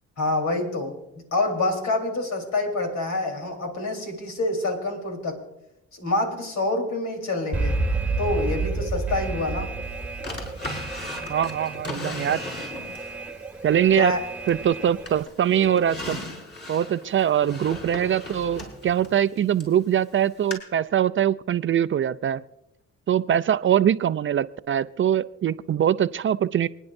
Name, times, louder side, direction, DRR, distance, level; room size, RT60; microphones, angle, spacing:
voice 1, 0.2-1.0 1.3-5.4 5.9-7.8 8.2-9.7 14.0-14.2, left 2 dB, 70° left, 2 dB, 3.9 m, -26 dB
Alarm, 7.5-15.2, right 3 dB, 5° right, 1.5 m, -30 dB
Drawer open or close, 10.2-13.1 13.6-14.7 15.1-19.8 20.5-20.6, left 2 dB, 35° left, 5.4 m, -37 dB
voice 2, 11.3-12.4 13.6-14.2 14.5-16.2 16.7-22.4 23.1-26.7, right 9 dB, 45° right, 15 dB, 0.5 m, -22 dB
28.0 x 10.0 x 2.6 m, 0.88 s
cardioid pair, 90°, 30 cm